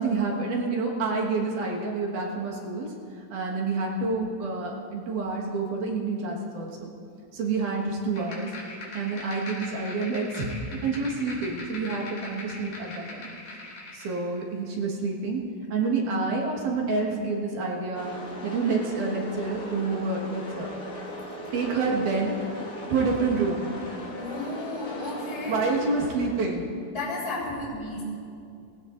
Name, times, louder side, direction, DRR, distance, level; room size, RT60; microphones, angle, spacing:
voice 1, 0.0-2.9 3.3-6.9 7.3-8.5 8.9-10.5 10.8-13.3 13.9-15.4 15.7-18.1 18.4-20.7 21.5-22.3 22.9-23.7 25.5-26.6, right 4 dB, 65° right, -2 dB, 3.1 m, -28 dB
sound 1, 8.1-14.2, left 2 dB, 85° left, 4.6 m, -41 dB
sound 2, 17.9-26.6, left 1 dB, 35° left, 1.5 m, -39 dB
voice 2, 24.2-25.7 26.9-28.0, left 2 dB, 20° left, -8 dB, 3.4 m, -33 dB
19.5 x 16.5 x 2.6 m, 2.5 s
omnidirectional pair, 4.0 m